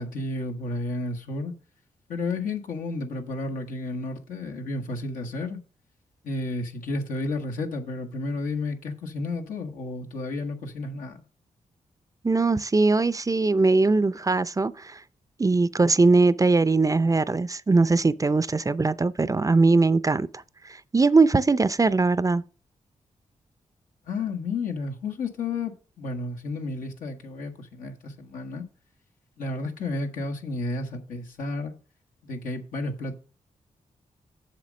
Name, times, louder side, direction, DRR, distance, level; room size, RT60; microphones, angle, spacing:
voice 1, 0.0-1.5 2.1-5.6 6.2-11.2 24.1-28.6 29.4-31.7 32.2-33.1, left 2 dB, 90° left, 1.4 m, -32 dB
voice 2, 12.2-15.0 15.4-22.4, right 3 dB, 25° right, 0.5 m, -21 dB
7.5 x 6.4 x 5.2 m
cardioid pair, 55°, 14 cm